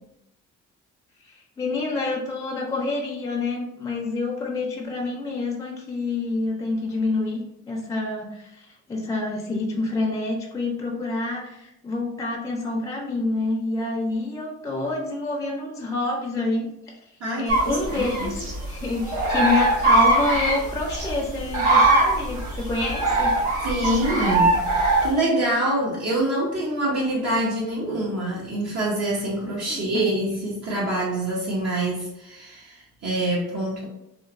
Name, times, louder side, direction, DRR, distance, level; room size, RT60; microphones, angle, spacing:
voice 1, 1.3-8.6 8.9-16.7 17.4-23.3 29.7-30.0, left 2 dB, 10° left, 0 dB, 0.4 m, -27 dB
voice 2, 17.2-18.3 23.6-33.8, right 1 dB, 60° right, -5 dB, 0.8 m, -26 dB
sound 1, 17.5-25.1, right 2 dB, 80° right, 1.4 m, -21 dB
2.9 x 2.0 x 2.4 m, 0.85 s
cardioid pair, 90°, 30 cm